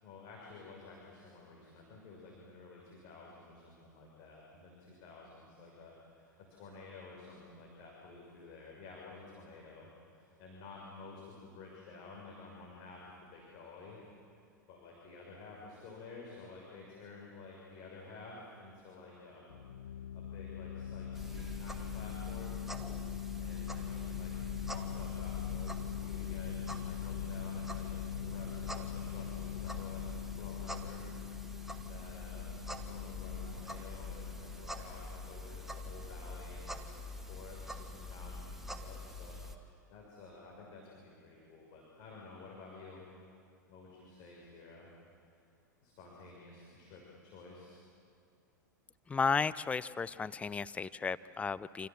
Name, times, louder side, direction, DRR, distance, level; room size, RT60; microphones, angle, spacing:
voice 1, 0.0-14.0 14.7-22.7 23.4-31.1 31.8-37.0 37.3-43.0 43.7-44.9 45.8-47.8, left 3 dB, 45° left, -2 dB, 6.3 m, -52 dB
sound 1, 19.5-35.8, left 9 dB, 70° left, 0.7 m, -42 dB
sound 2, 21.1-39.5, left 2 dB, 5° right, 2.0 m, -45 dB
voice 2, 49.1-51.9, left 5 dB, 10° left, 17 dB, 0.6 m, -34 dB
29.0 x 27.5 x 7.5 m, 2.5 s
figure-of-eight pair, 90°, 10 cm